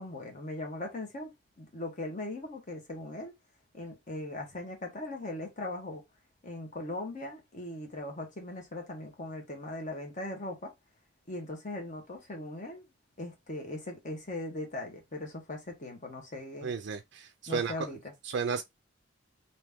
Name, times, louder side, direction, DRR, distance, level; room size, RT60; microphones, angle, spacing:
voice 1, 0.0-3.3 3.7-6.0 6.4-10.7 11.3-12.8 13.2-16.7 17.5-18.1, left 2 dB, 40° left, 1.2 m, -39 dB
voice 2, 16.6-17.7 18.3-18.6, right 6 dB, 60° right, 0.4 m, -33 dB
3.0 x 2.7 x 3.5 m
head